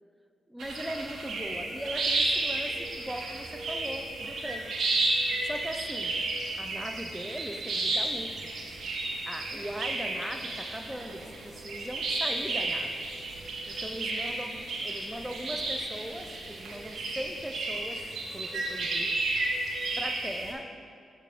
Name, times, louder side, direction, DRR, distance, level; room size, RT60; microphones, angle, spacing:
voice 1, 0.5-4.7 5.4-6.2 6.6-8.5 9.2-13.1 13.7-18.0 18.3-19.2 20.0-20.7, equal, 5° right, 5 dB, 0.5 m, -39 dB
sound 1, 0.6-20.5, right 2 dB, 70° right, 0.9 m, -32 dB
6.4 x 3.2 x 5.2 m, 2.3 s
supercardioid pair, 50°, 0 cm